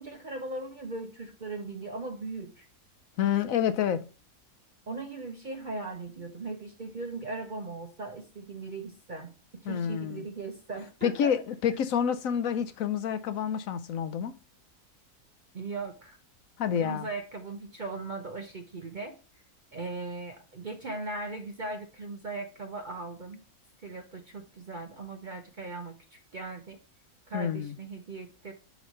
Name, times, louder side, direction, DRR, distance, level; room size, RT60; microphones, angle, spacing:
voice 1, 0.0-2.7 4.9-11.4 15.5-16.2 16.8-19.2 19.7-23.4 23.8-25.9 26.3-26.8 27.3-28.5, right 3 dB, 45° right, 0.7 m, -38 dB
voice 2, 3.2-4.0 9.7-10.3 11.0-14.3 16.6-17.1 27.3-27.8, left 8 dB, 70° left, 0.9 m, -28 dB
9.0 x 3.1 x 5.2 m
omnidirectional pair, 1.6 m